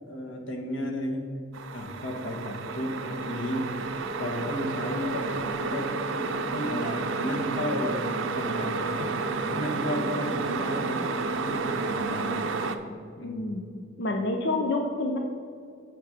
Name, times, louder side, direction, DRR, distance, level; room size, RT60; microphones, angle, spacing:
voice 1, 0.1-1.3 1.7-3.9 4.2-12.5 13.2-13.4, left 1 dB, 90° left, 3 dB, 1.3 m, -33 dB
sound 1, 1.5-12.8, right 4 dB, 90° right, 0.6 m, -31 dB
voice 2, 10.6-11.0 13.2-13.6 14.0-15.2, left 2 dB, 60° left, 3 dB, 0.7 m, -29 dB
7.2 x 6.8 x 5.0 m, 2.4 s
head